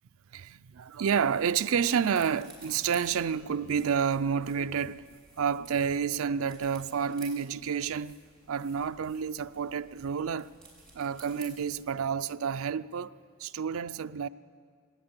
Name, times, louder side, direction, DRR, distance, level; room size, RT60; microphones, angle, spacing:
voice 1, 0.3-5.1 5.4-8.2 8.5-10.5 10.9-13.1 13.4-14.3, right 7 dB, 80° right, 0.4 m, -29 dB
sound 1, 1.1-12.0, right 2 dB, 5° left, 5.6 m, -54 dB
18.0 x 17.5 x 9.5 m
head